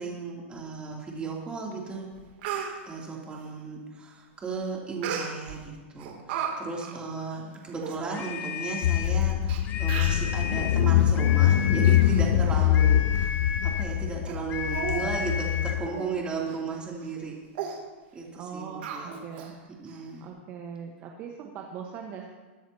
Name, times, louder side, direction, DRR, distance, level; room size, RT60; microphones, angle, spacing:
voice 1, 0.0-2.1 2.9-13.3 13.6-17.4 18.1-19.2 19.8-20.2, right 4 dB, 15° right, -3 dB, 2.9 m, -35 dB
Speech, 1.7-1.8 2.2-2.7 5.0-5.6 6.0-6.5 6.8-7.0 7.5-7.6 7.8-8.0 8.8-8.9 9.5-9.6 9.9-10.3 10.9-11.1 11.6-12.2 12.5-12.7 13.1-13.2 13.8-13.9 14.3-14.4 14.7-15.1 15.4-15.5 15.9-16.1 16.5-16.6 17.0-17.2 17.5-17.8 18.8-19.5 19.9-20.0, right 8 dB, 60° right, 2.7 m, -35 dB
sound 1, 8.1-9.2 9.6-10.9 11.1-12.1 12.7-13.9 14.5-15.8, left 7 dB, 25° left, 0.8 m, -35 dB
Car / Engine, 8.8-15.9, left 11 dB, 65° left, 0.4 m, -23 dB
voice 2, 12.3-12.7 18.3-19.6 20.2-22.3, right 7 dB, 35° right, 1 dB, 1.2 m, -40 dB
21.5 x 10.0 x 2.9 m, 1.3 s
supercardioid pair, 145°, 7 cm